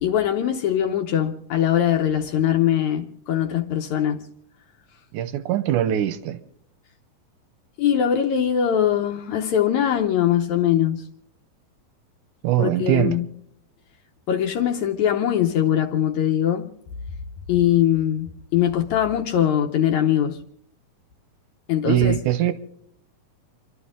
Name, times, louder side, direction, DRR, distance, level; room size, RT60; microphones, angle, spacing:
voice 1, 0.0-4.2 7.8-11.0 12.6-13.3 14.3-16.7 17.5-20.4 21.7-22.2, left 10 dB, 70° left, 1.9 m, -21 dB
voice 2, 5.1-6.4 12.4-13.2 21.8-22.5, right 12 dB, 75° right, 1.9 m, -22 dB
29.5 x 12.0 x 3.7 m
omnidirectional pair, 4.2 m